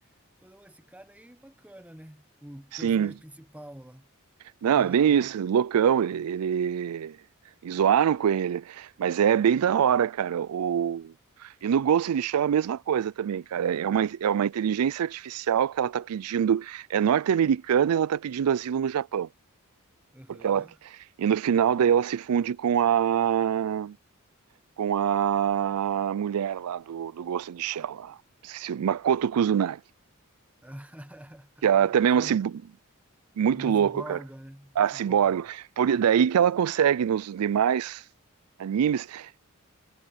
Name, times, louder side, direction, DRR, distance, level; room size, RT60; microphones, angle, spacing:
voice 1, 0.4-4.1 4.6-5.3 20.1-20.8 30.6-32.4 33.5-35.5, equal, 5° right, 1.2 m, -46 dB
voice 2, 4.6-7.2 7.6-11.1 11.4-19.3 20.4-20.7 21.2-24.0 24.8-28.2 28.4-29.8 31.6-32.5 33.4-34.2 34.8-35.5 35.8-38.0 38.6-39.4, right 8 dB, 80° right, 0.4 m, -24 dB
head